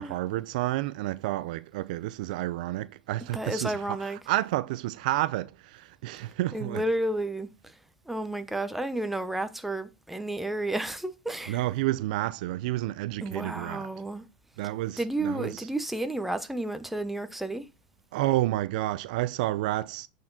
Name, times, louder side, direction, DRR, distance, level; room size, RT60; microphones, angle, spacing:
voice 1, 0.0-6.8 11.5-13.9 14.6-15.7 18.1-20.1, right 16 dB, 70° right, 0.5 m, -30 dB
voice 2, 3.3-4.2 6.5-7.8 8.1-11.6 13.2-14.2 15.0-17.7, right 1 dB, 5° right, 0.9 m, -31 dB
8.6 x 4.5 x 4.0 m
hypercardioid pair, 100°, 5 cm